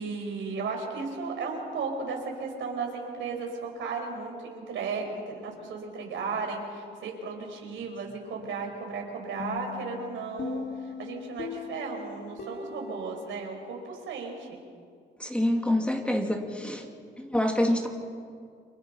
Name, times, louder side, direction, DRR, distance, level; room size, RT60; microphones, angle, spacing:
voice 1, 0.0-14.6, right 4 dB, 75° right, 1 dB, 5.5 m, -35 dB
sound 1, 9.4-14.1, left 5 dB, 55° left, 2.9 m, -40 dB
voice 2, 15.2-16.9 17.2-17.9, left 1 dB, 5° left, 2 dB, 2.7 m, -26 dB
30.0 x 24.0 x 5.9 m, 2.2 s
cardioid pair, 90°, 20 cm